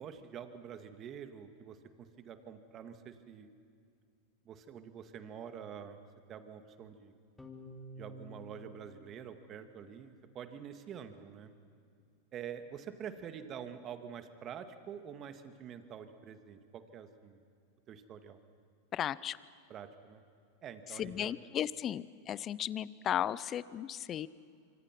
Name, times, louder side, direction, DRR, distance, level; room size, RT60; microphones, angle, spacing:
voice 1, 0.0-3.5 4.5-6.0 6.3-7.1 8.0-11.5 12.3-17.4 17.9-18.4 19.7-20.2 20.6-21.4, right 8 dB, 35° right, 8 dB, 2.0 m, -47 dB
sound 1, 7.4-10.0, right 1 dB, 10° left, 3.1 m, -51 dB
voice 2, 18.9-19.4 21.0-24.3, left 10 dB, 35° left, 19 dB, 0.7 m, -35 dB
25.5 x 25.0 x 6.1 m, 2.3 s
hypercardioid pair, 110°, 0 cm